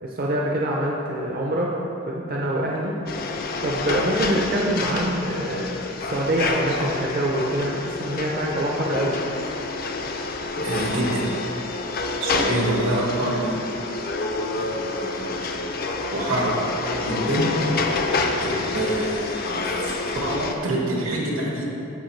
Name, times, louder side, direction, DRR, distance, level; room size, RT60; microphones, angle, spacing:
voice 1, 0.0-1.7 2.0-3.0 3.6-9.2, right 1 dB, 45° right, -2 dB, 0.6 m, -25 dB
sound 1, 3.1-20.5, left 3 dB, 45° left, 0.5 m, -28 dB
voice 2, 10.6-11.3 12.2-13.6 14.5-15.5 16.1-16.5 17.0-17.5 18.4-21.7, right 1 dB, 85° right, -3 dB, 1.6 m, -26 dB
13.0 x 4.4 x 3.2 m, 2.9 s
head